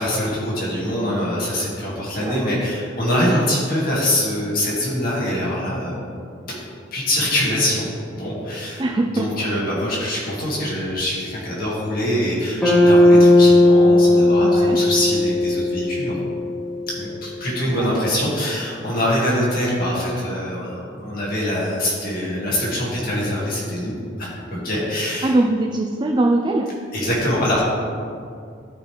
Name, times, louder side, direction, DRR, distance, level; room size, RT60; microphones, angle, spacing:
voice 1, 0.0-6.0 6.9-7.9 8.1-8.8 9.1-16.2 16.9-25.3 26.9-27.7, left 1 dB, 50° left, -6 dB, 2.1 m, -24 dB
voice 2, 8.8-9.5 14.4-14.8 17.7-18.0 25.2-26.8, right 2 dB, 25° right, 2 dB, 0.4 m, -22 dB
sound 1, 12.6-16.9, left 1 dB, 5° left, 1.8 m, -15 dB
12.5 x 5.3 x 3.4 m, 2.4 s
head